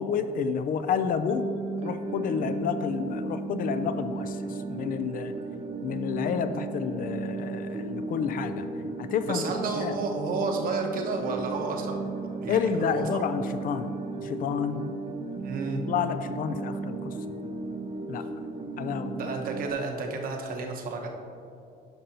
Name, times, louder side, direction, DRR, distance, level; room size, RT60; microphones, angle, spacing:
voice 1, 0.0-1.5 1.8-5.3 5.8-8.7 9.0-9.4 9.8-10.0 12.5-14.9 15.9-17.3 18.1-18.2 18.8-19.3, left 7 dB, 55° left, 10 dB, 0.5 m, -30 dB
sound 1, 1.3-19.7, right 4 dB, 35° right, 0.6 m, -35 dB
voice 2, 9.3-13.1 15.4-15.8 18.7-18.8 19.2-21.1, right 3 dB, 55° right, 2 dB, 1.1 m, -32 dB
10.5 x 5.4 x 2.9 m, 2.6 s
cardioid pair, 110°, 17 cm